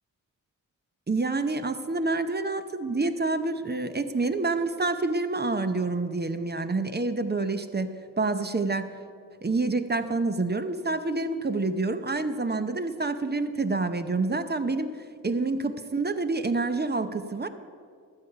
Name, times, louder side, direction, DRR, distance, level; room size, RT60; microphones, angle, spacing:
voice 1, 1.1-8.9 9.4-14.9 15.2-17.5, right 3 dB, 30° right, 9 dB, 0.7 m, -27 dB
12.5 x 7.2 x 5.7 m, 2.3 s
cardioid pair, 50°, 34 cm